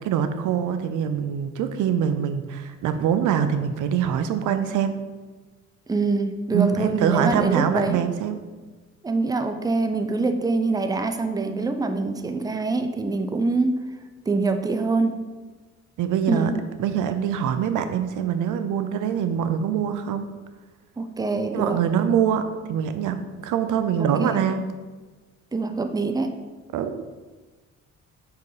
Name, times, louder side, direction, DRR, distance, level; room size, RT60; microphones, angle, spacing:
voice 1, 0.0-5.0 6.5-8.4 16.0-16.5 16.8-20.3 21.5-24.6 26.7-27.0, right 8 dB, 80° right, 9 dB, 0.6 m, -24 dB
voice 2, 5.9-8.0 9.0-13.7 14.3-15.1 16.3-16.6 21.0-21.8 24.0-24.4 25.5-26.3, right 3 dB, 10° right, 7 dB, 0.6 m, -24 dB
5.4 x 4.7 x 4.9 m, 1.3 s
cardioid pair, 90°, 30 cm